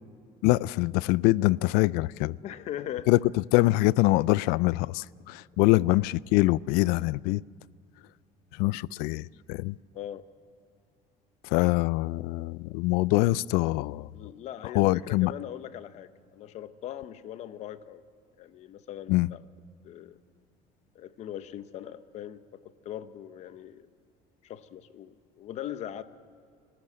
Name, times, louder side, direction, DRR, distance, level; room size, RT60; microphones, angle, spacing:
voice 1, 0.4-2.4 3.1-7.4 8.6-9.8 11.4-14.1 14.7-15.3 19.1-19.3, left 19 dB, 85° left, 0.4 m, -24 dB
voice 2, 2.4-3.1 5.6-5.8 9.9-10.3 14.1-18.0 18.4-19.4 19.8-20.2 20.9-23.9 24.4-26.0, left 11 dB, 45° left, 0.8 m, -40 dB
24.5 x 13.5 x 8.0 m
cardioid pair, 165°, 16 cm